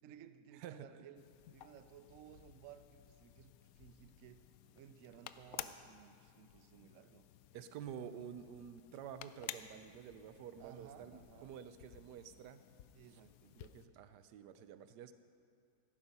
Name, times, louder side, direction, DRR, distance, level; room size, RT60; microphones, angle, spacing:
voice 1, 0.0-1.2 1.5-7.3 10.6-11.5 12.9-13.6, right 9 dB, 90° right, 11 dB, 0.6 m, -58 dB
voice 2, 0.5-1.0 7.5-12.6 13.6-15.1, right 8 dB, 70° right, 11 dB, 1.1 m, -50 dB
sound 1, 1.1-13.9, left 11 dB, 90° left, 0.7 m, -54 dB
13.5 x 11.5 x 5.4 m, 2.3 s
omnidirectional pair, 2.1 m